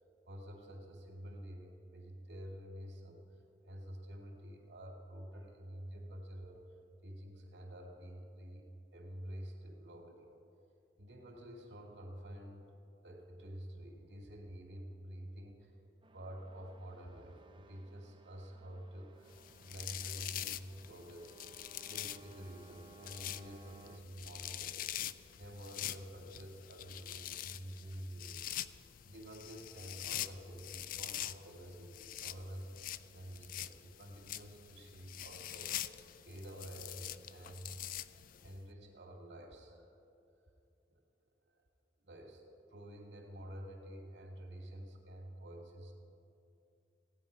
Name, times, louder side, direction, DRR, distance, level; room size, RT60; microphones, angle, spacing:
voice 1, 0.3-3.2 3.6-6.6 7.0-8.7 8.9-10.3 11.0-12.7 13.0-15.7 16.1-28.6 29.1-32.7 33.1-35.8 36.2-37.7 38.4-39.9 40.9-41.0 41.5-41.6 42.0-42.4 42.7-45.9, equal, 85° right, 2 dB, 2.4 m, -49 dB
sound 1, 16.0-24.0, right 3 dB, 30° right, 0.6 m, -60 dB
sound 2, 19.3-38.5, left 12 dB, 55° left, 0.3 m, -45 dB
16.0 x 9.5 x 5.3 m, 2.6 s
head